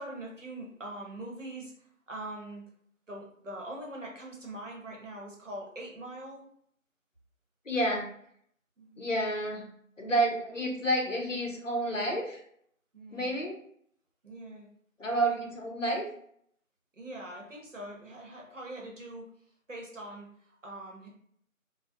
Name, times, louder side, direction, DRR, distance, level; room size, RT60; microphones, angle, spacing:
voice 1, 0.0-2.6 3.1-6.4 8.8-9.0 12.9-13.4 14.2-14.7 16.9-19.3 19.7-21.1, right 1 dB, 60° right, -1 dB, 0.8 m, -43 dB
voice 2, 7.7-8.1 9.0-12.4 13.1-13.6 15.0-16.1, right 1 dB, 65° left, 0 dB, 0.6 m, -30 dB
2.2 x 2.0 x 2.7 m, 0.66 s
figure-of-eight pair, 180°, 42 cm